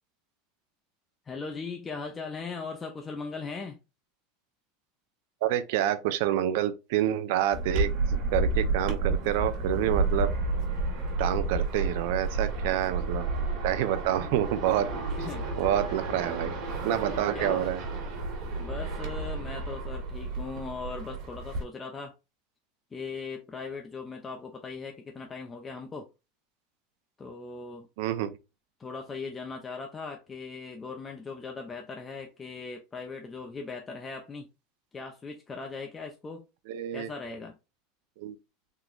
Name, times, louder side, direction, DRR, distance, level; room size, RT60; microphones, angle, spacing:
voice 1, 1.3-3.8 15.1-15.5 16.1-16.4 17.3-17.6 18.6-22.1 22.9-26.1 27.2-27.9 28.8-34.5 34.9-36.4 36.9-37.6, left 4 dB, 15° left, 0.4 m, -39 dB
voice 2, 5.4-10.3 11.2-13.3 13.6-14.9 15.6-16.5 16.8-17.8 28.0-28.4 36.7-37.1 38.2-38.3, right 12 dB, 65° right, 0.5 m, -28 dB
sound 1, 7.5-21.6, right 3 dB, 50° right, 1.3 m, -31 dB
3.7 x 2.9 x 2.4 m
supercardioid pair, 150°, 0 cm